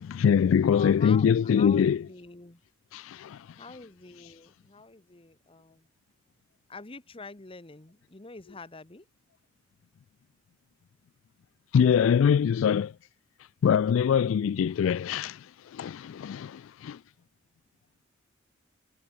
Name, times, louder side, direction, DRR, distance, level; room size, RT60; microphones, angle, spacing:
voice 1, 0.0-2.0 2.9-3.5 11.7-12.9 13.6-17.0, left 7 dB, 80° left, 0.3 m, -23 dB
voice 2, 0.6-2.6 3.6-5.9 6.7-9.1, left 3 dB, 25° left, 1.0 m, -46 dB
head